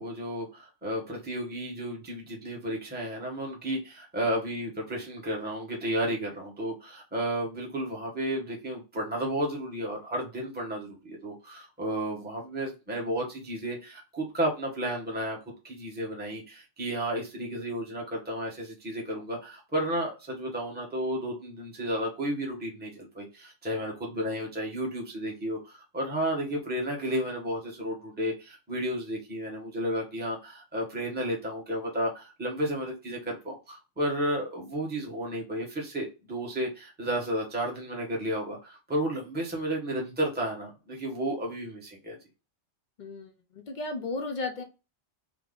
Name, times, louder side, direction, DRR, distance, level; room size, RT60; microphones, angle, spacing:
voice 1, 0.0-15.4 15.6-42.2, right 1 dB, 10° right, -2 dB, 1.0 m, -32 dB
voice 2, 43.0-44.6, left 3 dB, 55° left, 4 dB, 0.6 m, -35 dB
3.4 x 2.1 x 3.7 m, 0.28 s
omnidirectional pair, 1.1 m